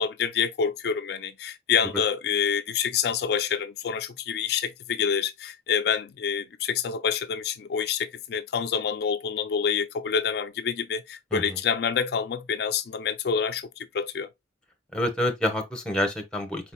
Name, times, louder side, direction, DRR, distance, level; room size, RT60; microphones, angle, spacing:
voice 1, 0.0-14.3, left 7 dB, 55° left, 0.3 m, -27 dB
voice 2, 14.9-16.7, left 1 dB, 5° left, 1.0 m, -28 dB
4.5 x 4.1 x 2.2 m
head